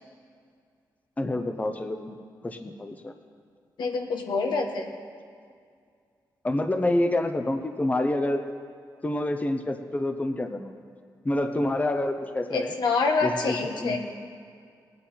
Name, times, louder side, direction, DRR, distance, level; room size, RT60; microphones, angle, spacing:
voice 1, 1.2-2.2 2.4-3.1 6.4-8.4 9.0-10.8 11.2-12.7 13.2-14.0, left 1 dB, 20° left, 7 dB, 0.8 m, -27 dB
voice 2, 3.8-4.9 12.5-14.0, left 4 dB, 80° left, 2 dB, 1.3 m, -26 dB
18.5 x 9.4 x 4.3 m, 2.2 s
cardioid pair, 75°, 8 cm